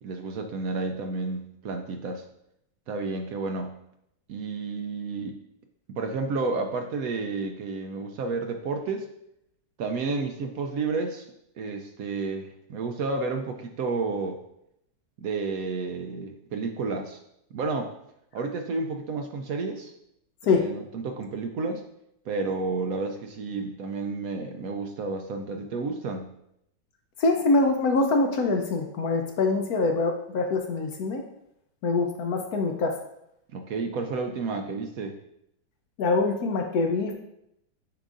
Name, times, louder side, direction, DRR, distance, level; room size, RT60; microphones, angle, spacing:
voice 1, 0.0-2.2 2.9-3.8 4.3-5.4 5.9-9.1 9.8-11.3 11.6-14.4 15.2-17.2 17.5-17.9 18.3-19.9 20.5-21.8 22.3-26.3 33.5-35.2, right 3 dB, 75° right, 4 dB, 0.8 m, -31 dB
voice 2, 27.2-31.2 31.8-33.0 36.0-37.1, left 3 dB, 65° left, 4 dB, 1.0 m, -24 dB
9.8 x 3.9 x 2.5 m, 0.78 s
omnidirectional pair, 2.0 m